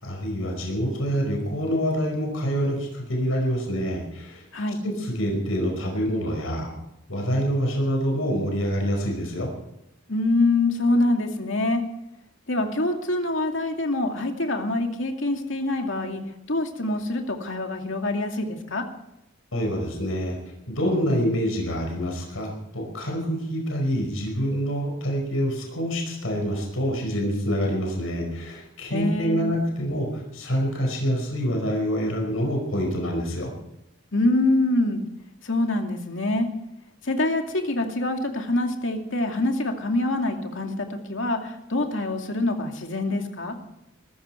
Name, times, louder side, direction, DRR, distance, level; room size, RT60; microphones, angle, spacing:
voice 1, 0.0-4.5 4.8-6.8 7.1-9.5 19.5-33.5, equal, 80° left, 1 dB, 5.2 m, -26 dB
voice 2, 10.1-11.8 12.5-16.2 16.5-18.9 28.9-29.4 34.1-35.0 35.4-36.5 37.0-43.6, left 2 dB, 65° left, 3 dB, 2.5 m, -25 dB
22.0 x 14.5 x 4.6 m, 0.86 s
head